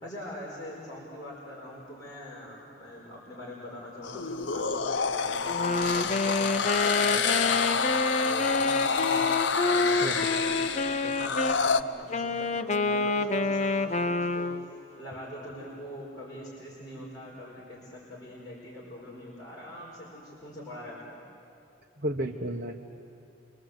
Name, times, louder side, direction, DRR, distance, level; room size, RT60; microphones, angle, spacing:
voice 1, 0.0-14.5 15.0-21.2, left 1 dB, 20° left, -6 dB, 4.9 m, -43 dB
sound 1, 4.0-11.8, left 5 dB, 85° left, 0.8 m, -28 dB
Wind instrument woodwind instrument, 5.4-11.6 12.1-14.7, left 3 dB, 40° left, 0.9 m, -28 dB
voice 2, 22.0-22.8, right 1 dB, 55° right, 1 dB, 1.3 m, -32 dB
29.5 x 25.0 x 8.0 m, 2.6 s
head